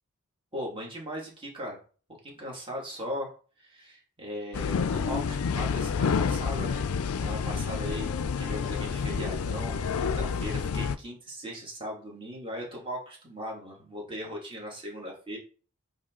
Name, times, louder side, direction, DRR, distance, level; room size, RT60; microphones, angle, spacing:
voice 1, 0.5-1.8 2.2-3.3 3.6-6.9 7.2-8.1 8.4-15.4, equal, 25° right, -2 dB, 2.1 m, -38 dB
sound 1, 4.5-11.0, left 5 dB, 80° left, 0.4 m, -29 dB
8.2 x 3.1 x 3.8 m, 0.39 s
head